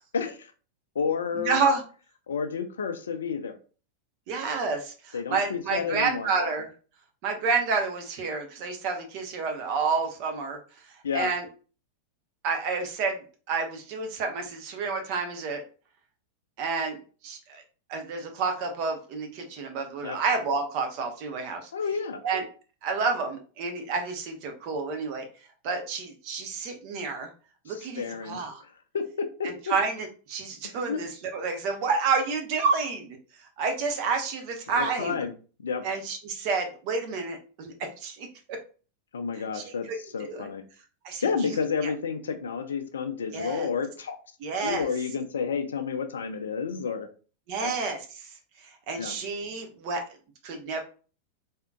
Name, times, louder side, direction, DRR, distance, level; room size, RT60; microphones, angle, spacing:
voice 1, 0.1-0.5 0.9-1.6 2.3-3.6 5.1-6.3 11.0-11.3 20.0-20.2 21.7-22.2 27.7-28.4 28.9-29.7 30.6-31.0 34.7-35.3 35.6-35.8 39.1-40.6 41.2-44.2 44.6-47.1 47.6-47.7 49.0-49.2, left 6 dB, 65° left, 8 dB, 0.5 m, -30 dB
voice 2, 1.3-1.8 4.3-6.7 7.2-10.6 11.1-11.5 12.4-15.6 16.6-17.6 17.9-21.7 22.2-22.4 22.8-25.3 25.6-27.3 27.6-28.6 29.4-33.2 33.6-35.2 35.8-37.7 38.0-38.3 39.5-39.7 40.3-40.5 41.0-41.9 43.3-43.7 44.4-44.9 47.5-48.3 48.6-50.0 50.4-50.8, right 4 dB, 45° right, 4 dB, 0.8 m, -29 dB
3.6 x 2.8 x 2.3 m, 0.37 s
figure-of-eight pair, 90°, 0 cm